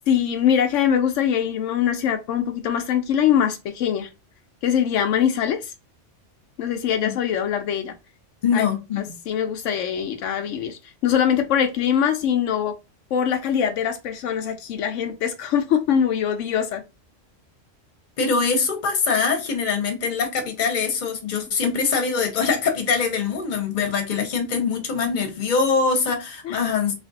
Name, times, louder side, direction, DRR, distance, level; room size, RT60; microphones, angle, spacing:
voice 1, 0.1-4.1 4.6-5.7 6.6-7.9 8.5-8.7 9.3-12.7 13.1-16.8 21.6-21.7 26.4-26.6, left 8 dB, 80° left, 0.9 m, -22 dB
voice 2, 8.4-9.1 18.2-26.9, left 5 dB, 45° left, 0.9 m, -23 dB
3.1 x 2.4 x 4.0 m
omnidirectional pair, 1.2 m